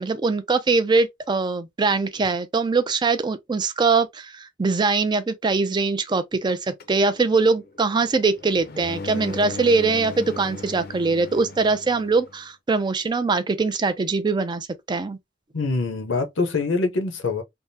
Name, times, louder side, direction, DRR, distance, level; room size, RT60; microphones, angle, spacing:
voice 1, 0.0-15.2, right 4 dB, 25° right, 0.4 m, -22 dB
sound 1, 6.8-12.4, left 2 dB, 55° left, 0.5 m, -38 dB
voice 2, 15.5-17.4, left 3 dB, 85° left, 0.8 m, -24 dB
3.4 x 2.0 x 2.7 m
head